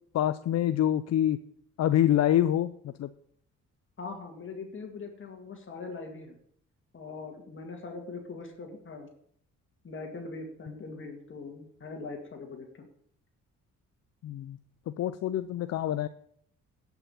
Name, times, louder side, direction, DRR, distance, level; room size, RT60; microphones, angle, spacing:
voice 1, 0.1-1.4 1.8-3.1 14.2-14.6 15.0-16.1, left 11 dB, 60° left, 12 dB, 0.5 m, -26 dB
voice 2, 4.0-6.3 6.9-9.1 9.8-12.8, left 4 dB, 40° left, 3 dB, 2.2 m, -41 dB
11.0 x 6.0 x 7.2 m, 0.65 s
cardioid pair, 90°, 30 cm